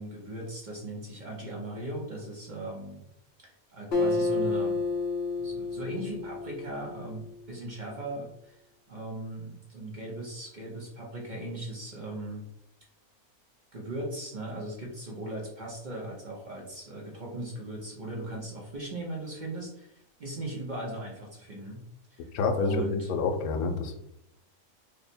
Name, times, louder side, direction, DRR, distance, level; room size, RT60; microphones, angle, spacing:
voice 1, 0.0-3.0 3.4-4.8 5.4-8.6 8.9-12.5 13.7-21.8 22.1-22.3 22.6-23.3, right 1 dB, 45° right, -2 dB, 0.7 m, -38 dB
Acoustic guitar, 3.9-7.5, left 3 dB, 60° left, 0.7 m, -30 dB
voice 2, 22.3-24.0, left 4 dB, 85° left, 5 dB, 1.1 m, -28 dB
3.2 x 2.0 x 4.2 m, 0.77 s
omnidirectional pair, 1.5 m